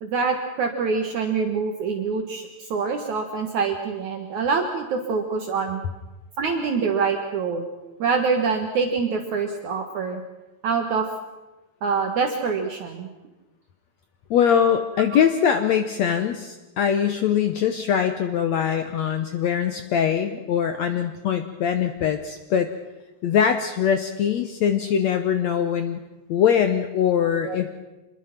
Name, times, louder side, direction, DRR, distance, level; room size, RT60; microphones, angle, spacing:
voice 1, 0.0-5.8 6.4-7.7 8.0-10.2 10.6-11.1 11.8-13.1 27.4-27.6, right 5 dB, 60° right, 4 dB, 2.6 m, -25 dB
voice 2, 14.3-22.7 23.2-26.0 26.3-27.7, left 8 dB, 70° left, 8 dB, 1.7 m, -22 dB
26.0 x 21.0 x 5.9 m, 1.1 s
omnidirectional pair, 4.2 m